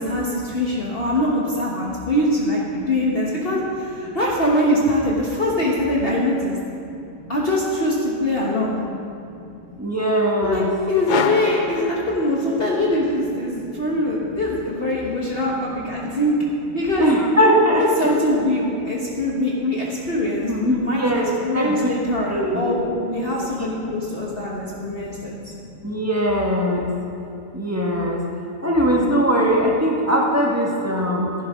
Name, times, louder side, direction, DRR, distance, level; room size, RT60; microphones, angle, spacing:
voice 1, 0.0-6.6 7.3-8.8 10.4-16.3 16.7-17.1 17.8-25.3, left 1 dB, 40° left, -4 dB, 1.5 m, -23 dB
voice 2, 9.8-10.7 17.0-18.1 20.5-20.6 21.0-21.3 21.5-21.7 22.3-22.7 25.8-26.9 27.5-28.2 28.6-31.3, equal, 10° right, -2 dB, 1.4 m, -20 dB
sound 1, 11.1-12.8, left 5 dB, 80° left, 0.4 m, -26 dB
15.0 x 11.0 x 3.7 m, 2.6 s
omnidirectional pair, 1.5 m